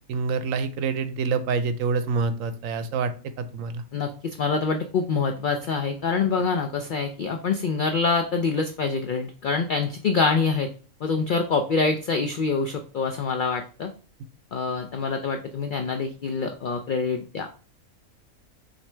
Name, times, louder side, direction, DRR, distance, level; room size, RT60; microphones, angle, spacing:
voice 1, 0.1-3.1 3.4-3.8, right 4 dB, 80° right, 11 dB, 1.0 m, -26 dB
voice 2, 3.9-10.7 11.0-13.9 14.5-17.5, left 4 dB, 80° left, 5 dB, 0.4 m, -25 dB
5.9 x 2.7 x 3.3 m, 0.38 s
omnidirectional pair, 1.4 m